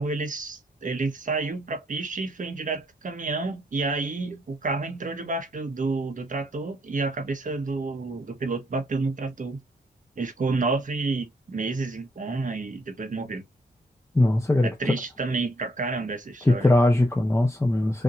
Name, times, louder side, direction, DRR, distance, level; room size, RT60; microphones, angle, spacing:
voice 1, 0.0-9.6 10.2-13.5 14.6-16.7, right 3 dB, 50° right, 1.3 m, -30 dB
voice 2, 14.1-14.7 16.4-18.0, left 1 dB, 15° left, 0.9 m, -20 dB
5.7 x 2.9 x 2.5 m
wide cardioid pair, 170°, 17 cm